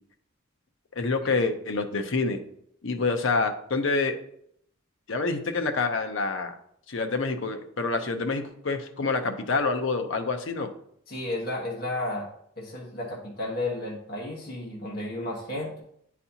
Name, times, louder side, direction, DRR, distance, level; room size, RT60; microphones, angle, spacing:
voice 1, 1.0-2.4 2.8-4.1 5.1-6.5 6.9-10.7, left 3 dB, 60° left, 6 dB, 0.7 m, -27 dB
voice 2, 11.1-12.3 12.6-15.8, left 2 dB, 45° left, -3 dB, 1.2 m, -32 dB
9.0 x 4.2 x 2.8 m, 0.70 s
head